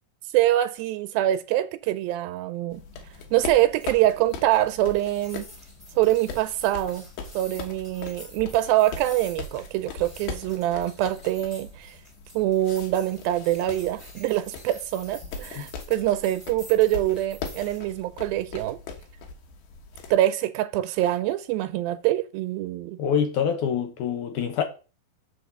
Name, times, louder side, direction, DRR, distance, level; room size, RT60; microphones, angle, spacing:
voice 1, 0.3-2.8 3.3-5.5 6.0-7.1 7.3-12.0 12.3-18.8 20.1-23.0, right 14 dB, 85° right, 2.4 m, -24 dB
sound 1, 2.7-20.1, left 4 dB, 85° left, 3.1 m, -40 dB
sound 2, 3.8-17.8, left 1 dB, 20° left, 1.6 m, -49 dB
voice 2, 23.0-24.6, left 7 dB, 70° left, 2.1 m, -25 dB
7.0 x 4.6 x 6.8 m
omnidirectional pair, 4.2 m